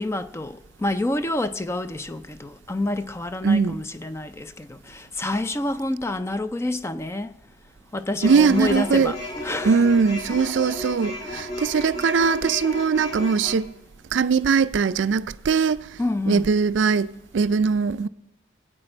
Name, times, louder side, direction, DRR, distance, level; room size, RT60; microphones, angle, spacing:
voice 1, 0.0-7.3 7.9-9.8 16.0-16.5, left 2 dB, 15° left, 0.4 m, -28 dB
voice 2, 3.4-3.8 8.2-9.1 9.6-13.7 14.1-15.8 16.3-17.1 17.3-18.1, right 5 dB, 70° right, 0.4 m, -20 dB
sound 1, 8.2-13.5, left 1 dB, 30° left, 1.8 m, -33 dB
24.0 x 8.8 x 4.4 m
head